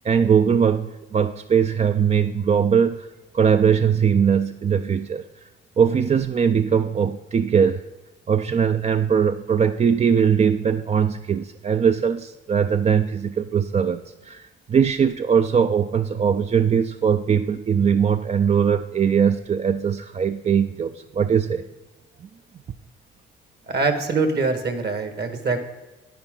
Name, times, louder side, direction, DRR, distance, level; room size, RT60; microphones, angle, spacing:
voice 1, 0.0-3.1 3.3-5.2 5.8-7.8 8.3-21.6, right 7 dB, 35° right, 9 dB, 0.4 m, -20 dB
voice 2, 23.7-25.6, right 3 dB, 55° right, 7 dB, 1.7 m, -23 dB
10.5 x 9.7 x 3.8 m, 1.1 s
cardioid pair, 90°, 20 cm